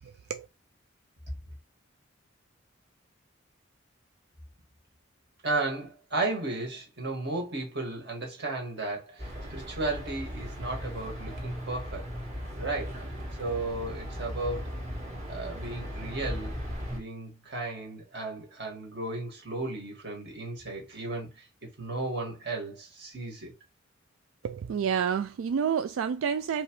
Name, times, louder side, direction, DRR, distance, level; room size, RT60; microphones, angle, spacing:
voice 1, 5.4-12.1 12.6-13.0 13.4-14.8 15.3-16.6 16.9-21.5 21.8-23.5, right 2 dB, 55° right, 2.1 m, -34 dB
sound 1, 9.2-17.0, equal, 35° right, 1.6 m, -37 dB
voice 2, 24.4-26.6, right 7 dB, 85° right, 0.3 m, -29 dB
4.9 x 3.4 x 3.2 m
head